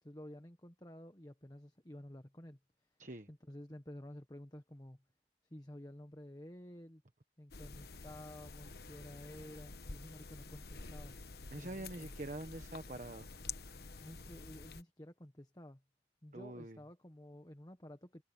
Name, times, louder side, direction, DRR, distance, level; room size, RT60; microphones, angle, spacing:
voice 1, 0.0-2.6 3.3-5.0 5.5-7.0 7.4-11.2 11.6-12.1 14.0-15.8 16.2-18.2, left 1 dB, 20° left, 1.4 m, -52 dB
sound 1, 7.5-14.8, left 4 dB, 60° left, 1.2 m, -49 dB
voice 2, 11.5-13.3 16.3-16.8, right 1 dB, 45° right, 1.3 m, -45 dB
head